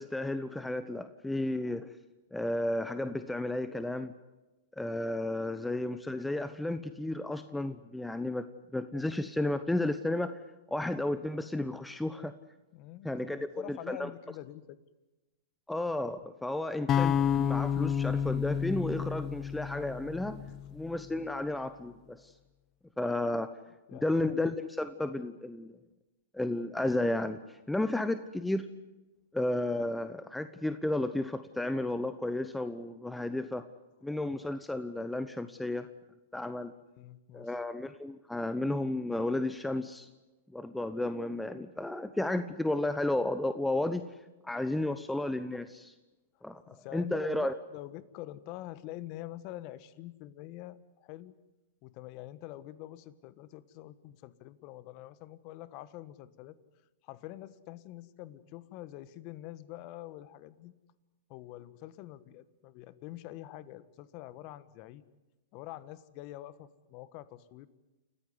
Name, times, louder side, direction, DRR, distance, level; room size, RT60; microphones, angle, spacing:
voice 1, 0.0-1.9 2.3-4.1 4.8-8.5 8.7-10.3 10.7-12.3 13.0-13.4 13.7-14.1 15.7-20.4 20.7-22.3 23.0-23.5 23.9-25.7 26.3-28.6 29.3-33.6 34.0-35.9 36.3-36.7 37.3-40.1 40.5-44.1 44.4-45.9 46.4-46.6 46.9-47.5, left 1 dB, 5° left, 10 dB, 1.1 m, -32 dB
voice 2, 12.7-14.8 23.9-24.2 37.0-37.5 46.7-51.3 51.8-56.6 57.0-60.7 61.3-65.0 65.5-67.7, left 14 dB, 45° left, 16 dB, 1.4 m, -46 dB
sound 1, 16.9-21.0, left 8 dB, 30° left, 0.8 m, -30 dB
29.5 x 14.5 x 9.7 m, 1.1 s
hypercardioid pair, 110°, 0 cm